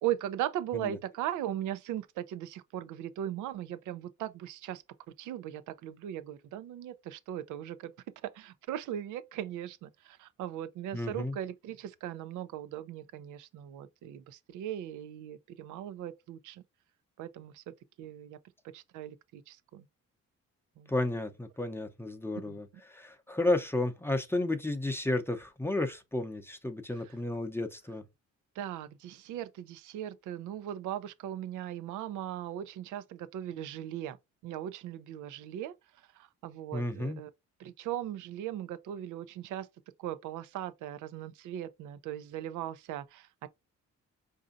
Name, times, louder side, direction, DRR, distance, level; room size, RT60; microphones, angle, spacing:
voice 1, 0.0-4.8 5.2-7.9 8.2-16.6 17.2-18.4 18.6-19.9 20.8-20.9 22.5-22.6 27.1-27.2 28.5-34.2 34.4-37.3 37.6-39.7 40.0-43.5, right 11 dB, 85° right, 0.5 m, -38 dB
voice 2, 10.9-11.4 20.9-28.0 36.7-37.2, left 2 dB, 10° left, 0.6 m, -32 dB
4.8 x 2.7 x 2.5 m
cardioid pair, 90°, 30 cm